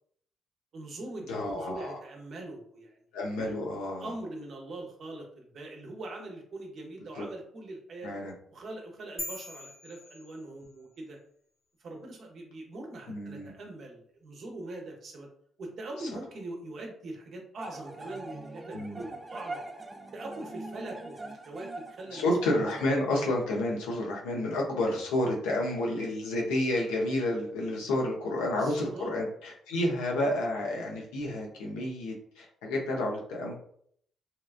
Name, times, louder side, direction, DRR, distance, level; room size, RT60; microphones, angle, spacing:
voice 1, 0.7-3.0 4.0-8.2 8.5-11.2 11.8-15.3 15.6-19.6 20.1-22.3 28.3-29.1 29.7-29.8, right 2 dB, 60° right, 1 dB, 0.8 m, -42 dB
voice 2, 1.3-2.0 3.1-4.1 7.2-7.3 8.0-8.3 13.1-13.5 18.7-19.0 22.1-33.5, left 1 dB, 90° left, -1 dB, 0.6 m, -30 dB
sound 1, 9.2-10.9, left 1 dB, 35° left, 0.9 m, -42 dB
sound 2, 17.6-22.9, right 2 dB, 30° right, 0.4 m, -42 dB
2.8 x 2.3 x 2.4 m, 0.63 s
supercardioid pair, 60°, 0 cm